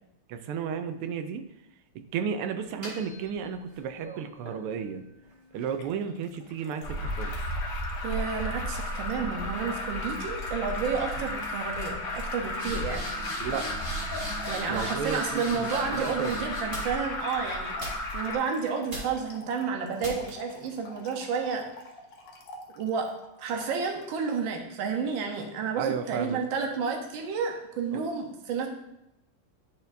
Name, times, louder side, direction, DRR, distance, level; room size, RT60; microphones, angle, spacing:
voice 1, 0.3-1.4 2.1-5.0 5.5-7.4 13.4-13.6 14.7-16.3 25.8-26.4 27.9-28.0, right 7 dB, 85° right, 8 dB, 1.5 m, -33 dB
sound 1, 2.6-3.8 4.5-8.0 8.4-8.8 9.5-9.7 10.0-10.5 10.7-11.2 11.4-11.5 11.8-17.2 17.8-18.4 18.9-19.4 20.0-20.5, right 1 dB, 25° right, 1.5 m, -42 dB
Trickle dribble / Fill (with liquid), 5.7-24.2, left 3 dB, 65° left, 1.4 m, -47 dB
Alarm, 6.8-18.4, left 1 dB, 85° left, 2.0 m, -33 dB
voice 2, 8.0-13.1 14.5-17.7 18.1-21.6 22.8-23.1 23.4-28.7, right 5 dB, 65° right, 3 dB, 1.5 m, -31 dB
10.5 x 4.2 x 2.6 m, 0.86 s
omnidirectional pair, 2.4 m